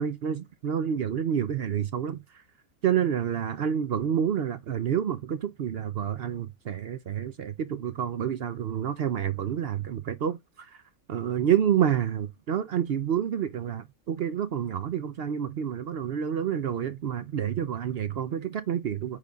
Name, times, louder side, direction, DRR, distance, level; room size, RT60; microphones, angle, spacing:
voice 1, 0.0-2.2 2.8-10.7 11.1-19.2, right 9 dB, 60° right, 0.7 m, -28 dB
8.3 x 3.6 x 3.9 m
omnidirectional pair, 1.4 m